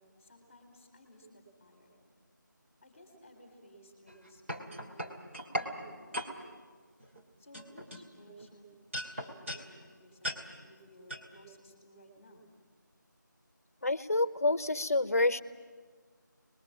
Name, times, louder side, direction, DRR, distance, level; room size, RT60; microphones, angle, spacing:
voice 1, 0.0-1.9 2.8-5.3 5.6-6.5 7.4-8.8 9.1-12.5, equal, 15° left, 2 dB, 3.6 m, -57 dB
sound 1, 4.1-5.7 6.1-6.3 7.0-7.2 7.5-8.5 8.9-9.7 10.2-10.4 11.1-11.3, equal, 40° right, 2.8 m, -37 dB
voice 2, 13.8-15.4, left 2 dB, 45° left, 15 dB, 0.9 m, -28 dB
30.0 x 21.5 x 7.5 m, 1.5 s
figure-of-eight pair, 175°, 11 cm